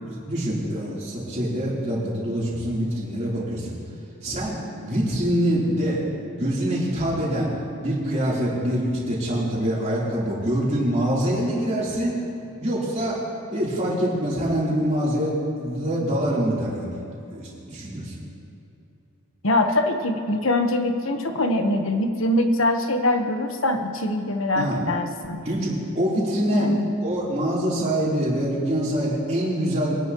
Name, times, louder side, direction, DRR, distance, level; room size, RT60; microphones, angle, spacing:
voice 1, 0.0-3.8 4.2-6.0 6.4-7.5 7.8-12.1 12.6-13.2 13.5-17.0 17.3-18.1 24.6-24.8 25.5-26.7 27.0-30.0, equal, 35° right, -7 dB, 3.5 m, -25 dB
voice 2, 19.4-25.4 26.5-26.9, left 1 dB, 65° left, 5 dB, 1.2 m, -23 dB
23.0 x 10.5 x 3.1 m, 2.7 s
head